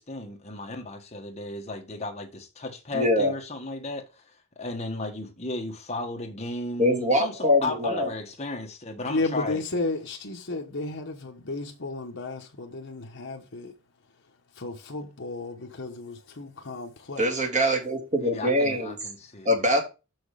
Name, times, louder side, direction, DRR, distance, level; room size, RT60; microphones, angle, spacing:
voice 1, 0.0-4.2 4.6-9.6 18.2-19.7, left 2 dB, 30° left, 1.5 m, -35 dB
voice 2, 2.9-3.3 6.8-8.1 17.2-19.0 19.4-19.8, left 1 dB, 35° right, 2.3 m, -23 dB
voice 3, 9.1-13.7 14.5-17.2, left 2 dB, 55° left, 1.1 m, -33 dB
6.3 x 6.1 x 4.9 m
head